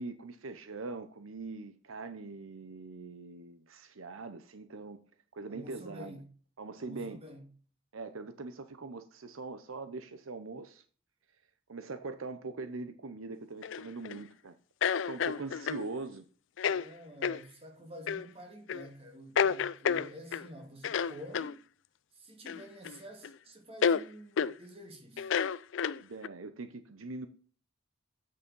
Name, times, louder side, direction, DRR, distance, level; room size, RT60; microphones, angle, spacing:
voice 1, 0.0-5.0 5.3-6.2 6.6-7.2 7.9-10.8 11.7-14.6 15.1-16.2 19.4-19.6 26.0-27.3, right 3 dB, 75° right, 0.8 m, -42 dB
voice 2, 5.5-6.3 6.8-7.5 16.7-21.6 22.1-25.3, equal, 30° right, 2.3 m, -49 dB
sound 1, 13.6-14.2 14.8-15.9 16.6-16.8 17.2-17.4 18.1-18.3 18.7-18.9 19.4-20.5 20.8-21.5 22.5-23.0 23.2-23.3 23.8-24.0 24.4-24.5 25.2-26.3, left 7 dB, 60° left, 0.4 m, -30 dB
8.4 x 6.7 x 5.3 m
head